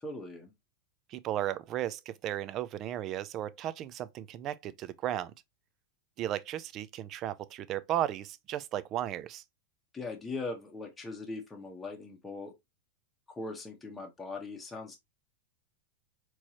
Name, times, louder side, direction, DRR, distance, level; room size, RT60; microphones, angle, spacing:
voice 1, 0.0-0.5 9.9-12.5 13.3-15.0, left 3 dB, 10° left, 0.9 m, -40 dB
voice 2, 1.1-5.3 6.2-9.4, right 12 dB, 35° right, 0.4 m, -35 dB
4.5 x 3.0 x 2.8 m
supercardioid pair, 150°, 0 cm